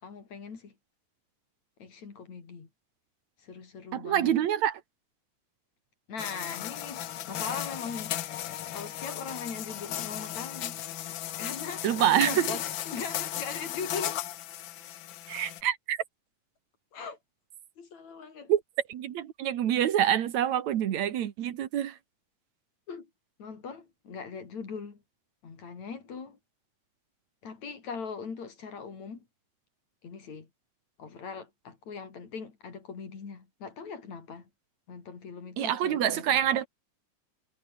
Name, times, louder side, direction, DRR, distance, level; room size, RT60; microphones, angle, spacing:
voice 1, 0.0-0.7 1.8-2.7 3.4-4.4 6.1-8.1 8.7-10.8 11.4-14.2 16.9-17.2 17.8-18.5 22.9-23.1 23.4-25.0 25.4-26.4 27.4-29.2 30.0-30.5 31.0-34.5 34.9-36.6, left 5 dB, 70° left, 5.2 m, -40 dB
voice 2, 3.9-4.8 11.8-12.6 15.3-16.0 18.5-18.6 18.9-22.0 35.6-36.7, right 10 dB, 70° right, 2.7 m, -26 dB
sound 1, 6.2-15.6, left 12 dB, 85° left, 1.0 m, -36 dB
omnidirectional pair, 3.4 m